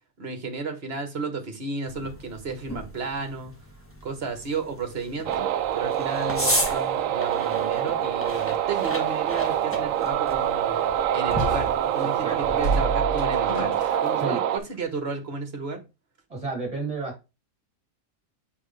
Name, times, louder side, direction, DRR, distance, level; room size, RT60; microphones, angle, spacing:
voice 1, 0.2-3.5 4.0-10.8 11.1-13.7 14.0-15.8, right 4 dB, 50° right, 1.6 m, -33 dB
sound 1, 1.9-12.8, left 1 dB, 10° left, 1.7 m, -35 dB
sound 2, 5.3-14.6, right 10 dB, 75° right, 1.0 m, -25 dB
sound 3, 8.3-10.6 10.8-10.9 11.4-12.1 12.6-14.4 14.7-15.0, right 2 dB, 80° left, 2.9 m, -32 dB
voice 2, 12.2-12.6 14.2-14.4 16.3-17.1, right 3 dB, 25° right, 3.0 m, -31 dB
6.3 x 5.5 x 3.3 m
omnidirectional pair, 1.4 m